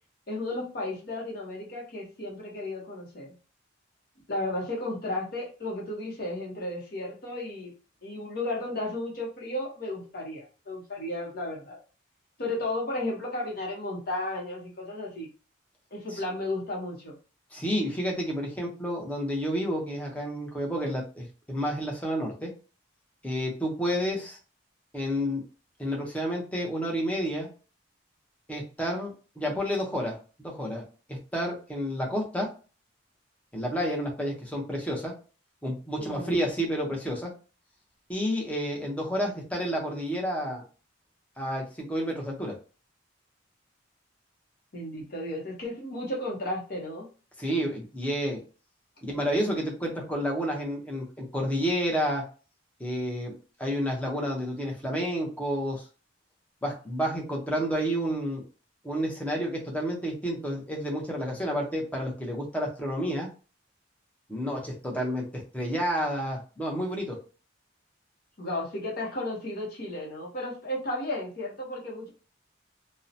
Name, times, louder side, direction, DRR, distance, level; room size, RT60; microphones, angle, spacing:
voice 1, 0.3-3.3 4.3-7.7 8.0-11.8 12.4-15.3 15.9-17.1 36.0-36.4 44.7-47.1 68.4-72.1, left 1 dB, 50° left, -2 dB, 0.8 m, -34 dB
voice 2, 17.5-22.5 23.2-24.4 24.9-25.4 25.8-27.5 28.5-32.5 33.5-35.1 35.6-37.3 38.1-40.6 41.4-42.5 47.4-48.4 49.0-52.2 52.8-53.3 53.6-55.8 56.6-58.4 58.8-63.3 64.3-67.2, equal, 5° left, -1 dB, 0.6 m, -30 dB
2.7 x 2.0 x 2.6 m, 0.36 s
head